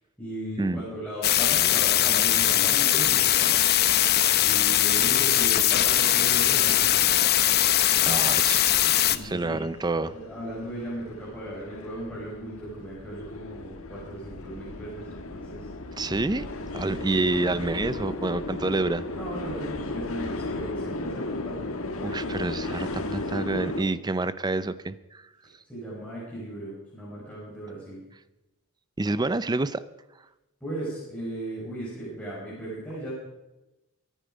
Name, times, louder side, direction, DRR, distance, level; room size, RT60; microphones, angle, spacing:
voice 1, 0.2-3.6 4.4-7.0 8.8-9.7 10.1-15.7 16.9-17.3 19.1-21.7 25.7-28.0 30.6-33.1, right 1 dB, 5° left, -8 dB, 5.5 m, -37 dB
sound 1, 1.2-9.2, left 12 dB, 45° left, 0.7 m, -21 dB
sound 2, 5.5-23.8, left 2 dB, 70° left, 1.5 m, -36 dB
voice 2, 8.0-8.7 9.2-10.1 16.0-16.5 16.7-19.0 22.0-25.2 29.0-29.8, right 2 dB, 20° right, 15 dB, 0.5 m, -28 dB
23.5 x 10.0 x 5.1 m, 1.0 s
head